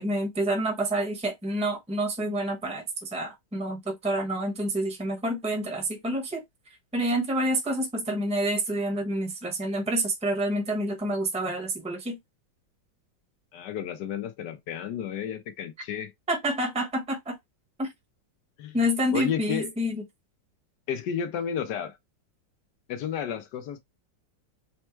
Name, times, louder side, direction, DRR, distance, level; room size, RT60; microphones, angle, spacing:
voice 1, 0.0-6.4 6.9-12.2 16.3-17.4 17.8-17.9 18.7-20.0, right 1 dB, 5° right, 0.8 m, -28 dB
voice 2, 13.5-16.1 18.6-18.8 19.1-19.7 20.9-22.0 22.9-23.8, left 8 dB, 70° left, 1.2 m, -32 dB
4.4 x 2.1 x 4.4 m
omnidirectional pair, 2.0 m